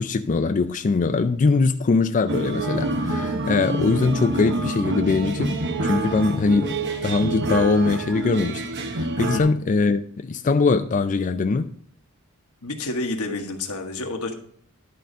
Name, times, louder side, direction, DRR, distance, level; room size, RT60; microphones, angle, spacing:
voice 1, 0.0-8.6 8.9-11.7, left 4 dB, 35° left, 0.4 m, -22 dB
sound 1, 2.3-9.4, right 2 dB, 55° right, 1.0 m, -27 dB
voice 2, 12.6-14.3, left 2 dB, 90° left, 1.4 m, -29 dB
11.5 x 3.9 x 5.3 m
head